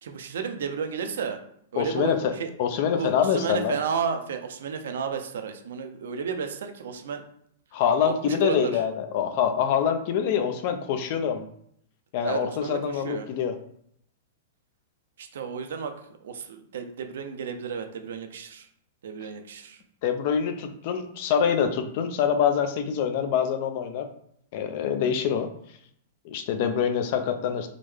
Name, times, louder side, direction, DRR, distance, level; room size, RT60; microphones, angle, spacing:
voice 1, 0.0-1.4 1.7-2.5 2.9-7.2 8.0-8.8 12.2-13.3 15.2-15.9 16.2-18.7 19.0-19.8, right 6 dB, 75° right, 7 dB, 0.5 m, -32 dB
voice 2, 1.8-2.3 2.6-3.7 7.7-11.4 12.1-13.6 20.0-24.1 24.5-25.5 26.2-27.7, left 8 dB, 50° left, 8 dB, 0.4 m, -25 dB
3.6 x 2.1 x 3.2 m, 0.68 s
hypercardioid pair, 135°, 0 cm